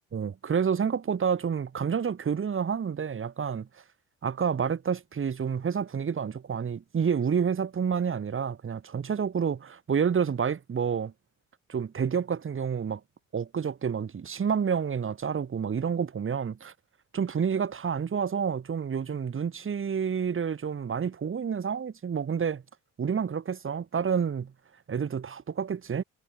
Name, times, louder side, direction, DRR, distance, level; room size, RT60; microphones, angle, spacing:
voice 1, 0.1-3.7 4.2-11.1 11.7-13.0 13.3-16.7 17.1-22.6 23.0-24.5 24.9-26.0, right 7 dB, 45° right, 3.2 m, -29 dB
cardioid pair, 90°, 30 cm